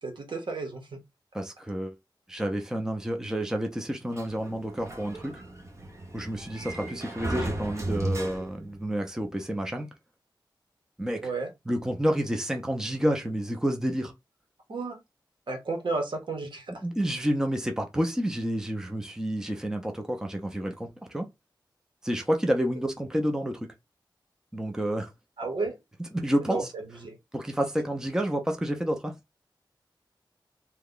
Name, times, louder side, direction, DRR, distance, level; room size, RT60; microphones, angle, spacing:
voice 1, 0.0-1.0 11.2-11.5 14.7-15.0 15.5-16.7 25.4-25.8 26.4-27.2, right 3 dB, 75° right, 1.1 m, -32 dB
voice 2, 1.3-1.9 2.3-5.4 6.1-9.9 11.0-11.3 11.7-14.1 16.8-21.3 22.0-23.7 24.5-25.1 26.0-26.7 27.3-29.1, equal, 5° right, 0.6 m, -29 dB
Sliding door, 4.1-8.8, right 2 dB, 35° right, 0.9 m, -35 dB
2.9 x 2.2 x 3.7 m
wide cardioid pair, 105°, 8 cm